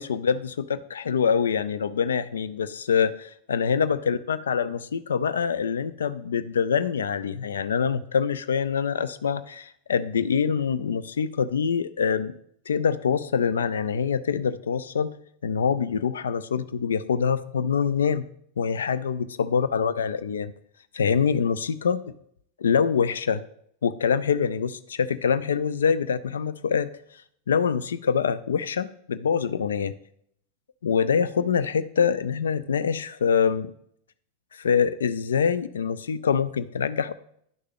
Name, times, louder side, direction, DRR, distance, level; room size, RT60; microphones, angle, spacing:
voice 1, 0.0-12.3 12.7-15.1 15.4-18.2 18.6-20.5 20.9-22.0 22.6-23.4 23.8-26.9 27.5-29.9 30.8-33.7 34.5-37.1, left 6 dB, 65° left, 15 dB, 0.3 m, -25 dB
10.5 x 6.5 x 3.5 m, 0.68 s
figure-of-eight pair, 90°, 0 cm